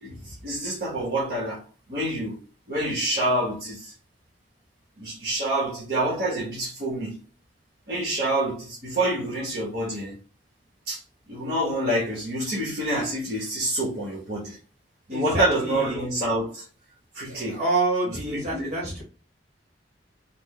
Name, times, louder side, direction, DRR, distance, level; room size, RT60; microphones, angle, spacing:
voice 1, 0.0-1.6 1.9-2.4 2.7-3.9 5.0-7.2 7.9-10.1 10.9-11.0 11.3-14.6 15.1-16.7 17.1-17.6 18.1-18.8, right 1 dB, 55° right, 1.1 m, -27 dB
voice 2, 15.1-16.1 17.3-19.0, right 2 dB, 40° right, 1.8 m, -27 dB
3.3 x 2.1 x 3.7 m
head